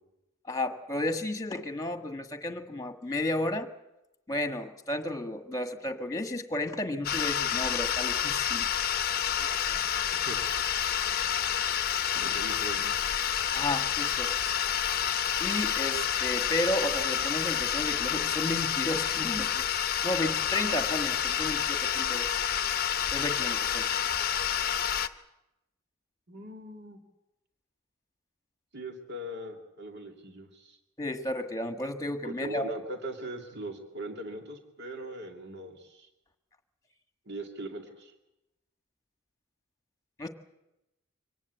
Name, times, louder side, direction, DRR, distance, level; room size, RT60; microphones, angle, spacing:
voice 1, 0.5-3.7 4.3-8.8 9.4-10.2 12.1-12.3 13.5-14.3 15.4-19.7 20.0-22.3 23.1-23.9 31.0-32.6 40.2-40.3, left 1 dB, 15° left, 7 dB, 1.6 m, -33 dB
sound 1, 7.0-25.1, left 9 dB, 45° left, 0.8 m, -29 dB
voice 2, 12.2-13.0 26.3-27.0 28.7-30.8 32.2-36.1 37.3-38.1, right 1 dB, 55° right, 3 dB, 2.6 m, -40 dB
24.5 x 18.5 x 8.3 m, 0.94 s
head